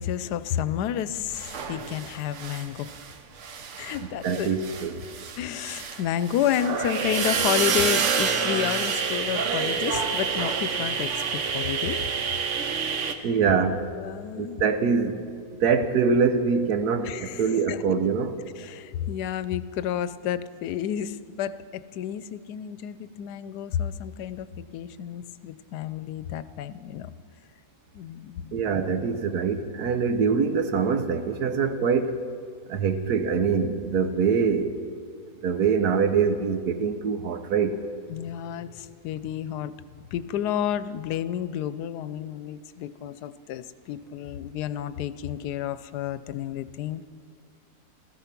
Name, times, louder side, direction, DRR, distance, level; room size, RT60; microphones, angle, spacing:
voice 1, 0.0-2.9 3.8-4.5 5.4-12.1 13.0-13.3 13.9-14.6 17.0-17.9 18.6-27.1 27.9-28.6 38.1-39.7 40.1-47.1, left 10 dB, 90° left, 1.2 m, -31 dB
sound 1, 1.3-3.1 3.4-13.1, right 6 dB, 55° right, 1.1 m, -28 dB
voice 2, 4.2-5.0 13.2-13.8 14.4-15.2 15.6-18.3 28.5-32.1 32.7-34.7 35.4-37.8, right 5 dB, 75° right, 1.4 m, -24 dB
16.0 x 14.0 x 5.9 m
omnidirectional pair, 1.7 m